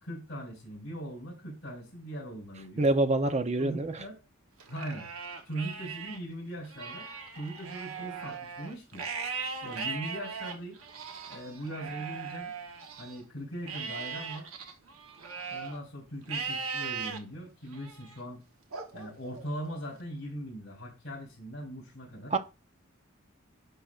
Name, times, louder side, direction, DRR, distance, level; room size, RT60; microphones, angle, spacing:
voice 1, 0.0-2.9 3.6-4.2 4.7-5.1 5.5-7.1 7.3-9.0 9.6-10.8 11.3-12.5 13.0-14.5 15.5-18.4 18.9-22.3, right 1 dB, 60° left, 3.3 m, -40 dB
voice 2, 2.8-3.9 22.3-22.4, right 2 dB, 35° right, 0.6 m, -26 dB
Livestock farm animals working animals, 4.6-6.2 6.6-13.2 13.7-15.8 16.3-17.2 17.7-18.2 18.7-19.8, right 5 dB, 90° right, 1.0 m, -39 dB
10.0 x 5.2 x 2.4 m
head